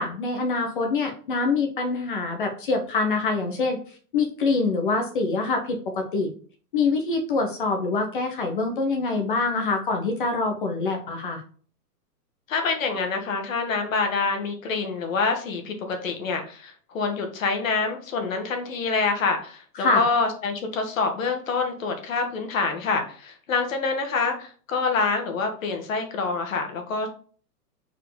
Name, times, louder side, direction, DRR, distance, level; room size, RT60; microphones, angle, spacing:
voice 1, 0.0-3.8 4.1-6.3 6.7-11.4 19.8-20.0, left 3 dB, 35° left, 4 dB, 0.8 m, -25 dB
voice 2, 12.5-27.1, left 4 dB, 55° left, 5 dB, 1.6 m, -26 dB
4.5 x 4.4 x 4.8 m, 0.43 s
hypercardioid pair, 175°, 48 cm